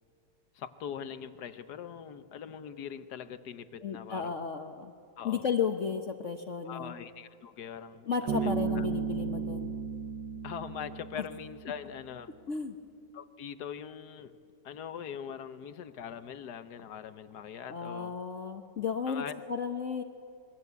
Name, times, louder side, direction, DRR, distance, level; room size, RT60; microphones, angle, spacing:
voice 1, 0.5-4.3 5.2-5.4 6.6-8.9 10.4-12.3 13.1-14.3 14.6-18.1 19.1-19.4, left 8 dB, 65° left, 12 dB, 1.5 m, -42 dB
voice 2, 3.8-4.9 5.2-6.9 8.1-9.7 11.2-11.3 12.5-12.8 17.7-20.0, left 6 dB, 50° left, 6 dB, 1.2 m, -33 dB
Bass guitar, 8.3-11.8, right 6 dB, 80° right, 2.3 m, -34 dB
27.5 x 22.5 x 8.2 m, 2.4 s
omnidirectional pair, 1.9 m